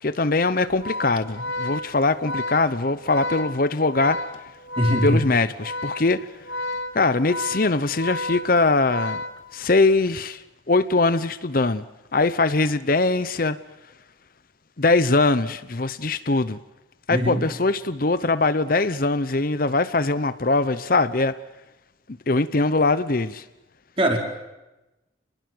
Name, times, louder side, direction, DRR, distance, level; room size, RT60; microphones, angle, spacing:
voice 1, 0.0-4.3 5.0-6.3 6.9-9.2 9.5-11.8 12.1-13.6 14.8-16.6 17.1-21.4 22.3-23.4, left 3 dB, 45° left, 0.8 m, -22 dB
Organ, 0.7-9.9, left 2 dB, 80° left, 2.2 m, -32 dB
voice 2, 4.8-5.2 17.1-17.4 24.0-24.2, equal, 30° right, 4.9 m, -21 dB
30.0 x 21.0 x 7.8 m
head